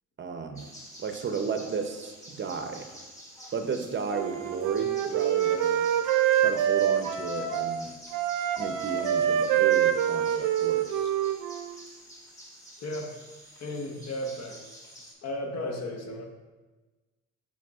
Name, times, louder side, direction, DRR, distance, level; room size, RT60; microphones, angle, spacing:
voice 1, 0.2-0.7 1.0-2.9 3.5-5.9 6.3-8.0 8.6-11.1, right 5 dB, 40° right, 6 dB, 0.6 m, -34 dB
sound 1, 0.5-15.1, equal, 10° left, 1.8 m, -49 dB
Wind instrument woodwind instrument, 4.1-7.8 8.1-11.7, right 10 dB, 90° right, 0.5 m, -26 dB
voice 2, 12.8-13.2 13.6-14.6 15.2-16.3, left 1 dB, 60° left, 2 dB, 1.0 m, -34 dB
7.7 x 5.4 x 2.4 m, 1.2 s
cardioid pair, 90°, 30 cm